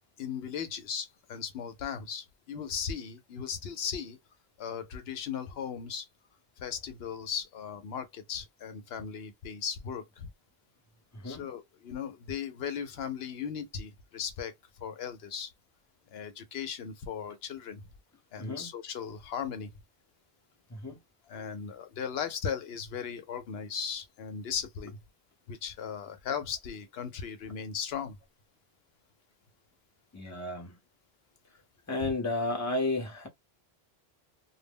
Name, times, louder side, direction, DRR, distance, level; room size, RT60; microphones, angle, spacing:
voice 1, 0.2-4.2 4.6-6.1 6.6-10.3 11.2-14.5 14.8-15.5 16.1-17.8 18.3-19.7 21.3-25.0 25.5-28.2 32.0-32.1, left 7 dB, 75° left, 0.8 m, -37 dB
voice 2, 11.1-11.4 18.4-18.7 20.7-21.0 30.1-30.8 31.9-33.3, left 2 dB, 20° left, 0.7 m, -32 dB
2.2 x 2.0 x 3.4 m
omnidirectional pair, 1.1 m